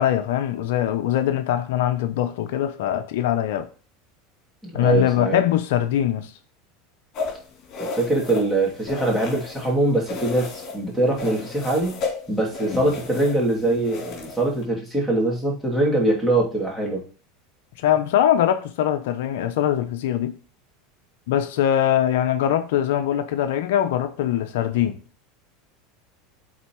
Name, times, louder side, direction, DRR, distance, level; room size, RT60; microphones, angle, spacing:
voice 1, 0.0-3.7 4.7-6.3 17.8-20.4 21.3-25.0, left 11 dB, 75° left, 0.6 m, -22 dB
voice 2, 4.6-5.4 7.8-12.0 12.3-17.0, right 2 dB, 5° right, 2.8 m, -23 dB
sound 1, 7.1-9.7 10.0-10.8 11.1-14.6, left 4 dB, 45° left, 2.6 m, -33 dB
8.1 x 4.1 x 3.1 m
hypercardioid pair, 95°, 0 cm